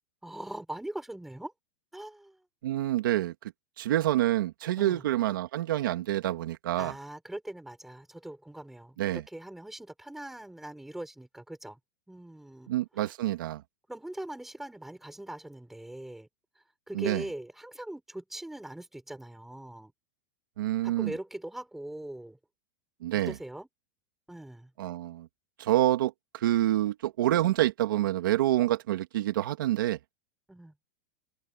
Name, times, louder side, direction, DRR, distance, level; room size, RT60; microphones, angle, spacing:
voice 1, 0.2-1.5 1.9-2.4 4.8-5.0 6.8-11.8 12.1-13.1 13.9-16.3 16.9-19.9 20.8-22.4 23.3-23.7 24.3-24.7 30.5-30.7, right 1 dB, 5° right, 6.0 m, -41 dB
voice 2, 2.6-3.3 3.8-6.9 9.0-9.2 12.7-13.6 16.9-17.2 20.6-21.1 23.0-23.3 24.8-25.3 25.6-30.0, right 14 dB, 85° right, 2.3 m, -27 dB
supercardioid pair, 170°, 11 cm